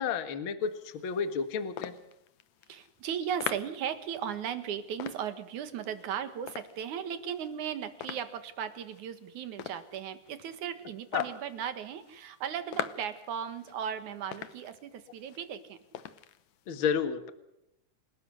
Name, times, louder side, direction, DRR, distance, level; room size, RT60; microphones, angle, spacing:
voice 1, 0.0-1.9 11.1-11.3 16.7-17.3, left 7 dB, 50° left, 9 dB, 2.1 m, -31 dB
sound 1, 0.6-16.7, left 11 dB, 75° left, 2.3 m, -45 dB
voice 2, 2.7-15.8, right 8 dB, 75° right, 10 dB, 3.0 m, -36 dB
28.0 x 18.0 x 6.5 m, 0.83 s
omnidirectional pair, 3.5 m